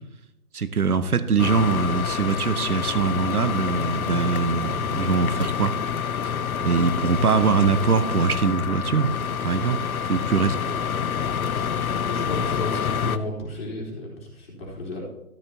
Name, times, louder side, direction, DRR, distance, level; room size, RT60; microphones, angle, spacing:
voice 1, 0.5-5.8 6.6-9.1 9.4-10.5, right 5 dB, 75° right, 12 dB, 0.8 m, -22 dB
sound 1, 1.4-13.2, left 7 dB, 70° left, 0.6 m, -27 dB
voice 2, 12.1-15.0, left 1 dB, 40° left, -4 dB, 4.0 m, -33 dB
13.0 x 10.5 x 2.9 m, 0.88 s
figure-of-eight pair, 150°, 45 cm